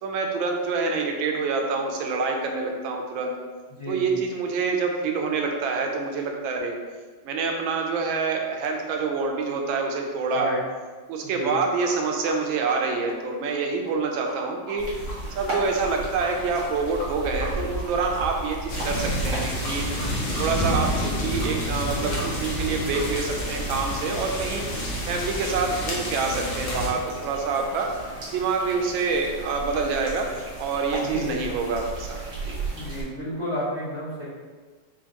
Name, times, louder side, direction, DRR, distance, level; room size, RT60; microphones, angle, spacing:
voice 1, 0.0-3.3 3.9-6.8 7.2-10.5 11.1-14.9 15.4-19.9 20.4-24.6 25.1-27.9 28.3-30.3 30.6-32.2 32.4-32.6, right 4 dB, 85° right, 2 dB, 1.4 m, -26 dB
voice 2, 3.7-4.2 10.3-10.6 11.2-11.6 31.0-31.4 32.7-34.2, equal, 25° left, -10 dB, 0.7 m, -31 dB
sound 1, 11.8-11.9 12.2-12.3 12.7-12.8 13.1-13.2 13.5-13.6 13.8-13.9 14.3-14.4 14.7-14.8 15.1-15.2 15.5-15.9 16.2-16.3 16.6-16.7 17.0-17.1 17.4-17.5 17.8-17.9 18.1-18.2 18.5-18.6 18.9-19.0 19.2-19.3 19.6-19.7 20.0-20.1 20.3-20.4 20.7-20.8 21.0-21.1 21.4-21.5 21.8-21.9 22.2-22.3 22.5-22.6 22.9-23.0 23.3-23.4, equal, 55° left, 0.9 m, -39 dB
sound 2, 14.8-33.0, right 2 dB, 65° right, 2.0 m, -36 dB
sound 3, 18.7-26.9, equal, 75° left, 1.7 m, -29 dB
5.6 x 2.5 x 2.8 m, 1.4 s
omnidirectional pair, 2.1 m